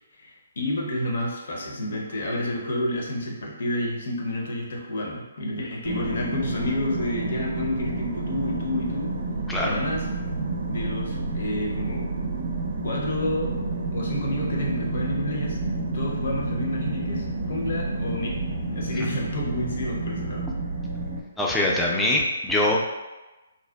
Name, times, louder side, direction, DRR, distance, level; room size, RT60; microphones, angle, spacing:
voice 1, 0.1-9.1 9.6-10.1 10.7-12.1 12.8-13.5 13.9-15.6 15.9-18.4 18.7-20.4, left 1 dB, 65° left, -1 dB, 0.6 m, -29 dB
sound 1, 5.8-21.2, right 2 dB, 60° right, 0.4 m, -30 dB
voice 2, 9.5-9.8 21.4-22.8, left 1 dB, 5° left, -3 dB, 0.3 m, -23 dB
2.6 x 2.1 x 2.2 m, 1.1 s
hypercardioid pair, 145°, 0 cm